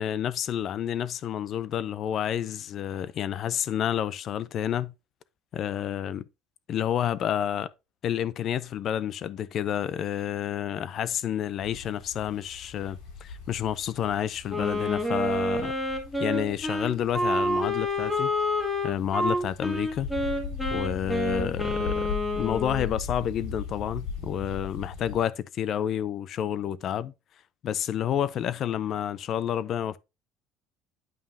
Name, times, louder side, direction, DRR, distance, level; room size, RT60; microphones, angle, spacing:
voice 1, 0.0-4.9 5.5-6.2 6.7-7.7 8.0-15.7 16.2-18.3 18.8-20.1 20.7-27.1 27.6-30.0, left 10 dB, 40° left, 0.5 m, -29 dB
sound 1, 11.6-25.2, left 5 dB, 65° left, 4.4 m, -39 dB
Wind instrument woodwind instrument, 14.5-22.9, left 1 dB, 5° left, 1.7 m, -28 dB
9.2 x 5.5 x 2.6 m
cardioid pair, 150°, 0 cm